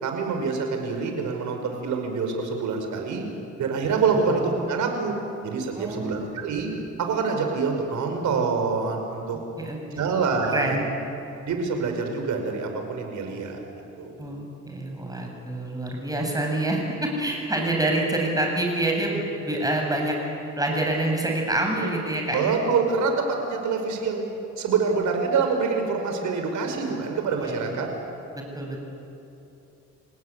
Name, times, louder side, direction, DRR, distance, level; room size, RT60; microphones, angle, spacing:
voice 1, 0.0-3.2 3.6-5.1 5.4-6.7 7.0-9.4 9.9-10.8 11.5-13.6 14.0-14.2 22.3-27.9, right 5 dB, 75° right, 4 dB, 5.4 m, -26 dB
voice 2, 5.7-6.2 9.6-10.1 10.5-10.9 14.2-20.2 20.6-22.5 27.4-27.8 28.3-28.8, right 1 dB, 10° right, 1 dB, 8.0 m, -27 dB
29.0 x 18.5 x 9.7 m, 2.8 s
cardioid pair, 90°, 30 cm